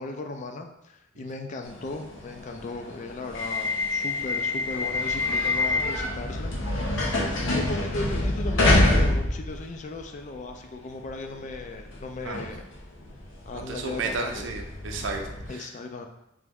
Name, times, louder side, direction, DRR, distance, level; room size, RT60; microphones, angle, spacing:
voice 1, 0.0-6.5 7.4-12.6 13.5-14.5 15.5-16.1, left 3 dB, 40° left, 4 dB, 0.4 m, -37 dB
sound 1, 1.6-10.0 10.5-15.5, left 2 dB, 90° left, 0.9 m, -27 dB
voice 2, 13.5-15.7, right 3 dB, 70° right, 4 dB, 0.5 m, -33 dB
3.3 x 3.0 x 3.5 m, 0.83 s
head